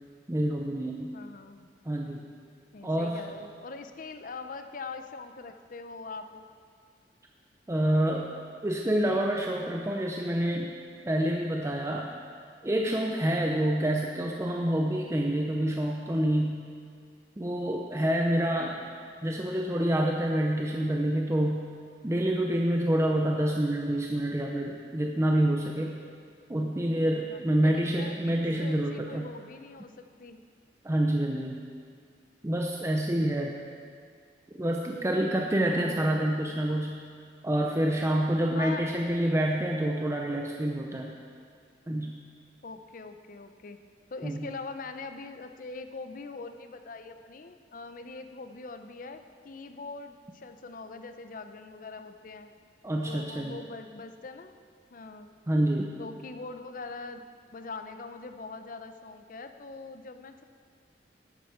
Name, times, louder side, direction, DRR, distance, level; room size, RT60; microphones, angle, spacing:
voice 1, 0.3-1.1 1.9-2.3 2.8-3.2 7.7-8.3 8.6-10.7 11.0-12.1 12.6-16.6 17.4-18.9 19.2-21.6 22.0-26.0 26.5-29.3 30.8-31.6 32.4-33.5 34.5-37.0 37.4-41.1 41.9-42.2 44.2-44.5 52.8-53.6 55.5-55.9, right 1 dB, 15° right, 1 dB, 0.5 m, -27 dB
voice 2, 1.1-1.7 2.7-6.5 27.3-30.4 35.8-35.9 38.5-39.0 39.2-39.3 42.6-43.8 44.1-52.5 53.1-54.6 54.9-55.4 56.0-60.4, left 3 dB, 50° left, 8 dB, 0.6 m, -42 dB
11.5 x 8.6 x 4.4 m, 2.2 s
head